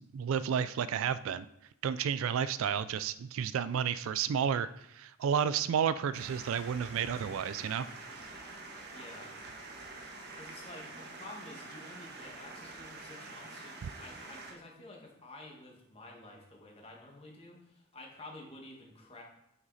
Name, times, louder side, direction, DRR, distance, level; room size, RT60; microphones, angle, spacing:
voice 1, 0.0-1.5 1.8-7.9, right 7 dB, 65° right, 15 dB, 0.3 m, -31 dB
sound 1, 6.1-14.5, right 3 dB, 50° right, 1.3 m, -47 dB
voice 2, 8.9-9.3 10.3-19.2, left 2 dB, 25° left, 0 dB, 1.7 m, -50 dB
9.4 x 5.9 x 4.1 m, 0.80 s
head